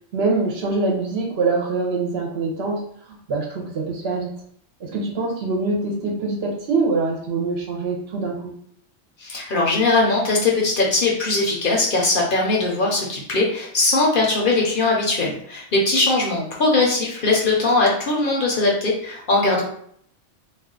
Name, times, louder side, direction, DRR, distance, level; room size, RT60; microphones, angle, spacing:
voice 1, 0.1-2.8 3.3-4.3 4.8-8.5, right 3 dB, 65° right, -1 dB, 0.8 m, -24 dB
voice 2, 9.2-19.6, left 3 dB, 55° left, -2 dB, 0.7 m, -20 dB
2.4 x 2.2 x 3.6 m, 0.65 s
omnidirectional pair, 1.2 m